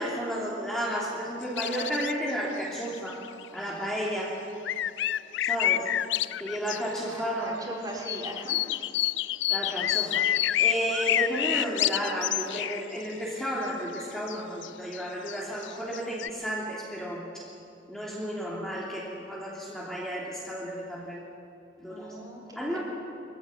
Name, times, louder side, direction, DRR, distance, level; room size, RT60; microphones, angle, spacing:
voice 1, 0.0-3.2 3.5-4.4 5.4-5.9 6.4-7.5 9.5-17.4 17.9-21.2 21.8-22.1 22.5-22.8, equal, ahead, -6 dB, 3.1 m, -32 dB
sound 1, 1.4-2.3 2.6-2.7 3.0-3.6 4.6-7.0 8.0-12.8 13.9-14.0 14.3-16.3, left 13 dB, 65° left, 0.4 m, -28 dB
voice 2, 7.1-8.6 21.9-22.8, right 1 dB, 20° right, -2 dB, 4.2 m, -40 dB
23.5 x 15.0 x 9.5 m, 2.6 s
head